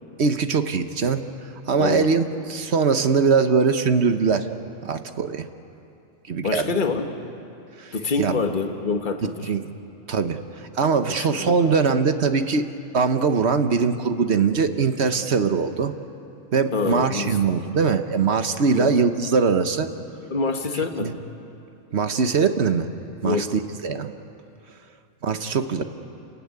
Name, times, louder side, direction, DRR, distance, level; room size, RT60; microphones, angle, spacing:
voice 1, 0.2-1.2 1.7-4.5 4.8-5.5 6.3-6.7 7.8-8.4 9.5-9.6 10.1-12.6 12.9-15.9 16.5-19.9 21.0-21.1 21.9-22.9 23.2-23.5 23.8-24.1 25.2-25.8, right 5 dB, 60° right, 8 dB, 1.3 m, -21 dB
voice 2, 1.8-2.1 6.4-7.1 7.9-9.5 11.1-11.7 16.7-17.4 18.7-18.9 20.3-21.2 23.2-23.6, left 4 dB, 40° left, 5 dB, 1.6 m, -26 dB
29.0 x 15.5 x 9.6 m, 2.7 s
omnidirectional pair, 1.3 m